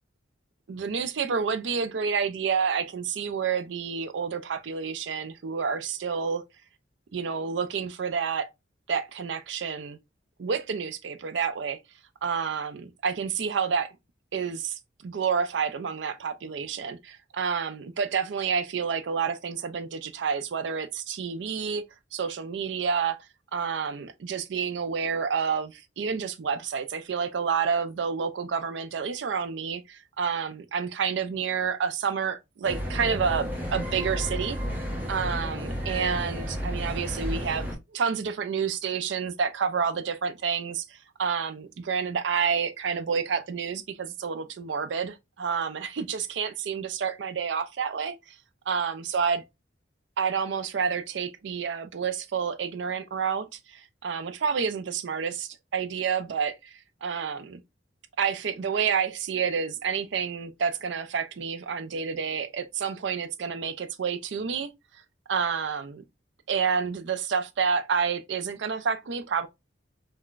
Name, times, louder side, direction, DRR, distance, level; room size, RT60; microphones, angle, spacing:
voice 1, 0.7-6.4 7.1-8.5 8.9-10.0 10.4-11.8 12.2-14.0 14.3-21.8 22.1-23.2 23.5-48.4 48.7-49.4 50.2-57.6 58.2-64.7 65.3-66.0 66.5-69.5, right 6 dB, 70° right, 0.4 m, -29 dB
sound 1, 32.6-37.8, equal, 10° right, 0.8 m, -32 dB
3.7 x 2.2 x 2.3 m
head